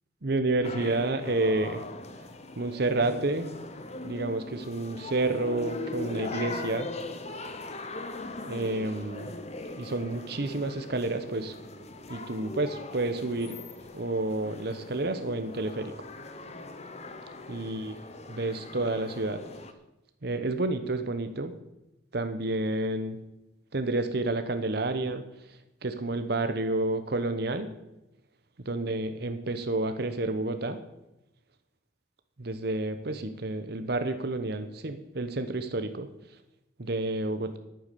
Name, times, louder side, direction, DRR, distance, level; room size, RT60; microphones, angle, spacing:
voice 1, 0.2-1.8 2.6-3.5 4.0-6.9 8.4-9.3 9.7-11.5 12.1-13.6 13.9-15.9 17.5-18.0 18.3-19.4 20.2-21.5 22.1-23.2 23.7-25.6 25.8-27.8 28.6-30.8 32.4-36.1 36.8-37.6, right 2 dB, 55° right, 9 dB, 0.9 m, -30 dB
sound 1, 0.6-19.7, left 2 dB, 35° left, 1.0 m, -40 dB
10.5 x 9.3 x 6.8 m, 0.92 s
head